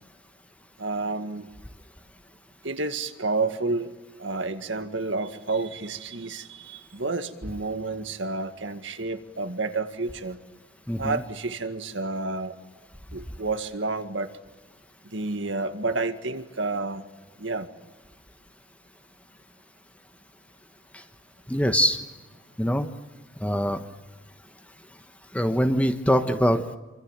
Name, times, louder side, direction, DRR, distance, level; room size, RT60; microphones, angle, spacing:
voice 1, 0.8-1.5 2.6-3.9 4.2-10.4 11.0-12.5 13.1-14.3 15.1-17.1 17.4-17.7, right 3 dB, 65° right, 8 dB, 2.0 m, -30 dB
voice 2, 10.9-11.2 20.9-21.0 21.5-22.0 22.6-22.9 23.4-23.8 25.3-26.8, equal, 5° left, 8 dB, 1.2 m, -23 dB
28.0 x 25.5 x 7.4 m, 1.2 s
head